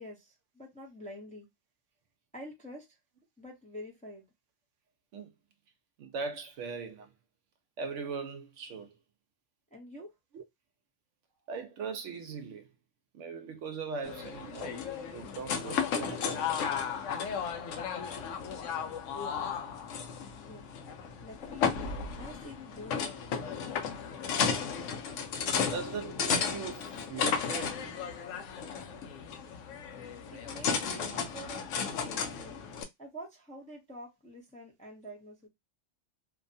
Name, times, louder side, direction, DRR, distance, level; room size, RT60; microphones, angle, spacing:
voice 1, 0.0-1.5 2.3-2.9 3.4-4.2 9.7-10.1 20.4-20.6 21.2-23.0 30.3-32.6 33.0-35.5, equal, 10° left, 0.6 m, -47 dB
voice 2, 6.0-7.1 7.8-9.0 10.3-10.4 11.5-12.7 13.1-14.8 15.1-16.4 24.2-24.6 25.6-28.0, right 5 dB, 75° right, 0.9 m, -40 dB
sound 1, 14.0-32.8, left 6 dB, 80° left, 0.9 m, -34 dB
2.7 x 2.2 x 2.6 m
omnidirectional pair, 1.3 m